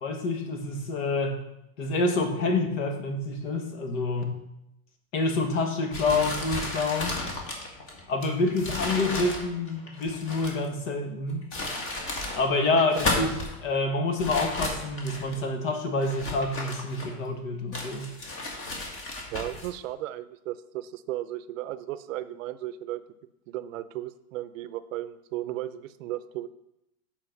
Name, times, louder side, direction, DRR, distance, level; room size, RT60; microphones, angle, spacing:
voice 1, 0.0-1.4 1.8-4.4 5.1-7.2 8.1-11.5 12.3-18.1, left 3 dB, 60° left, 4 dB, 1.8 m, -27 dB
sound 1, 5.9-10.7 11.3-12.4 12.8-13.6 14.2-15.4 16.0-17.3 17.7-19.7, left 2 dB, 30° left, 1.7 m, -33 dB
voice 2, 19.3-23.0 23.5-26.5, right 14 dB, 60° right, 14 dB, 0.6 m, -35 dB
7.8 x 4.4 x 6.0 m, 0.86 s
supercardioid pair, 135°, 43 cm